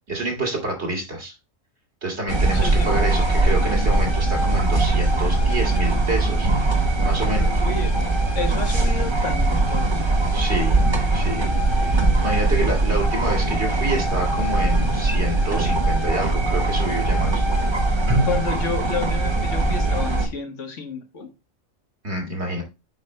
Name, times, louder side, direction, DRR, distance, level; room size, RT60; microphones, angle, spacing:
voice 1, 0.1-1.3 2.0-6.5 7.0-7.6 10.3-10.8 11.1-11.5 11.7-11.9 12.2-17.4 22.0-22.6, right 1 dB, 55° right, 2 dB, 2.5 m, -27 dB
sound 1, 2.3-20.3, right 2 dB, 25° right, 0.9 m, -21 dB
voice 2, 2.5-2.9 7.3-7.9 8.3-9.9 18.2-21.3, left 5 dB, 65° left, 5 dB, 1.7 m, -30 dB
7.5 x 5.1 x 3.2 m, 0.25 s
omnidirectional pair, 1.3 m